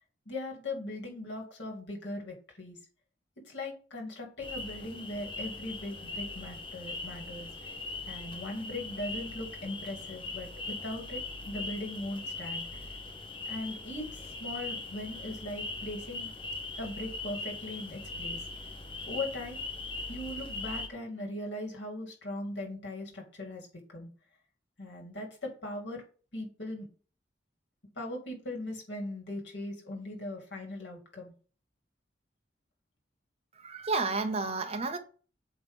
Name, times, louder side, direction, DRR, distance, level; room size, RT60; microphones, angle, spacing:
voice 1, 0.3-2.8 3.5-7.5 8.1-12.9 13.5-16.3 16.8-18.4 19.1-19.6 20.1-24.1 24.8-26.0 26.3-26.9 28.0-31.3, left 1 dB, 85° left, 2.6 m, -39 dB
sound 1, 4.4-20.9, left 3 dB, 30° left, 0.9 m, -40 dB
voice 2, 33.5-35.0, right 3 dB, 35° right, 0.9 m, -31 dB
8.2 x 3.1 x 5.2 m
head